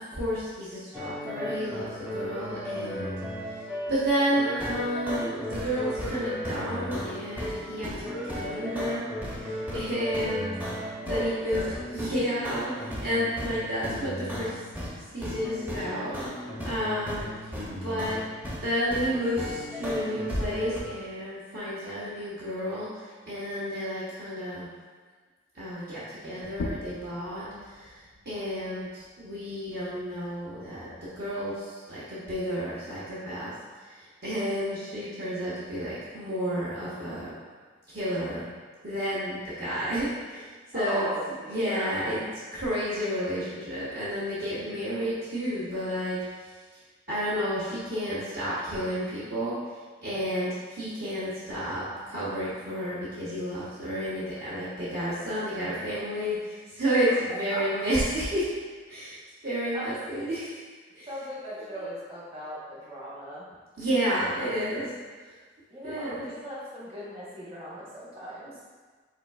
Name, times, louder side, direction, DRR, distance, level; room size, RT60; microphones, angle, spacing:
voice 1, 0.0-1.8 2.1-3.1 3.9-10.5 11.0-11.6 11.9-14.5 15.1-16.1 16.6-17.3 17.7-18.2 18.6-24.7 25.5-27.9 28.2-33.5 33.9-37.3 37.9-38.4 38.8-41.1 41.5-42.2 42.5-46.2 47.1-49.6 50.0-58.5 58.9-60.6 61.0-61.1 63.8-64.9 65.2-65.3 65.8-66.3, equal, 50° right, -10 dB, 0.8 m, -31 dB
sound 1, 0.9-15.0 15.2-18.6 18.9-20.8, equal, 10° right, 0.6 m, -35 dB
voice 2, 11.0-11.7 40.7-42.0 57.5-57.6 59.7-59.9 61.1-63.5 65.7-68.6, equal, 30° right, -7 dB, 1.1 m, -38 dB
sound 2, 26.4-31.6, left 2 dB, 65° left, 0.4 m, -42 dB
5.0 x 3.9 x 2.3 m, 1.5 s
head